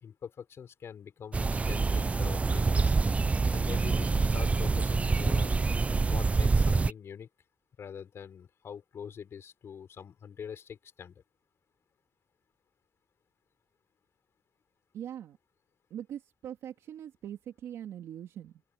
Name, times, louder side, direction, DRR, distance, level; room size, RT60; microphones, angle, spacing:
voice 1, 0.0-2.9 3.5-5.7 6.1-7.3 7.8-11.2, left 7 dB, 65° left, 4.7 m, -44 dB
sound 1, 1.3-6.9, right 4 dB, 25° right, 0.6 m, -26 dB
voice 2, 14.9-15.4 15.9-18.6, right 10 dB, 85° right, 2.9 m, -42 dB
open air
cardioid pair, 85°, 5 cm